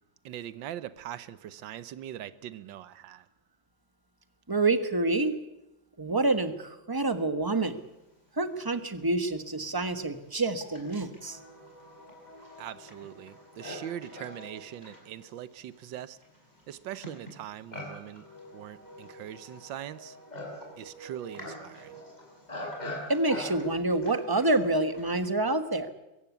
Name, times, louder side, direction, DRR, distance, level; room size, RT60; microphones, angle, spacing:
voice 1, 0.2-3.2 12.6-16.2 16.7-18.3 18.5-20.2 20.8-22.0, right 11 dB, 75° right, 15 dB, 1.6 m, -41 dB
voice 2, 4.5-5.4 6.0-7.8 8.4-11.4 23.1-25.9, right 2 dB, 15° right, 9 dB, 1.0 m, -27 dB
Livestock farm animals working animals, 8.6-8.7 9.4-25.4, left 1 dB, 20° left, 5.5 m, -44 dB
23.0 x 16.0 x 8.4 m, 0.96 s
omnidirectional pair, 2.1 m